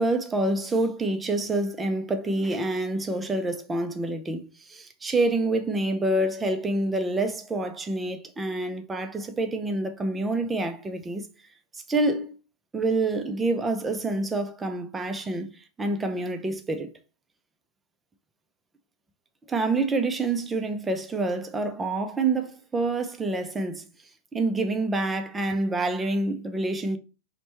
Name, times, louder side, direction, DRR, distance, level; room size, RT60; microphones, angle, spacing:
voice 1, 0.0-11.3 11.7-12.3 12.7-15.5 15.8-16.9 19.5-23.8 24.3-27.0, right 2 dB, 15° right, 0.4 m, -27 dB
4.2 x 2.2 x 2.9 m
hypercardioid pair, 110°, 0 cm